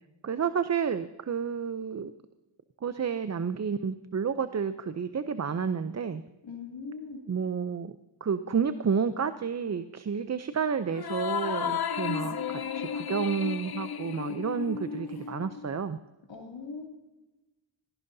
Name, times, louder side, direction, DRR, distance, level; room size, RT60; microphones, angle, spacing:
voice 1, 0.2-2.1 2.8-6.2 7.3-8.0 8.2-16.0, right 6 dB, 35° right, 12 dB, 0.6 m, -30 dB
voice 2, 6.4-7.2 16.3-16.9, left 4 dB, 75° left, 0 dB, 2.8 m, -40 dB
sound 1, 10.9-15.7, left 7 dB, 55° left, 0.7 m, -33 dB
17.5 x 15.0 x 2.7 m, 1.1 s
wide cardioid pair, 75°, 45 cm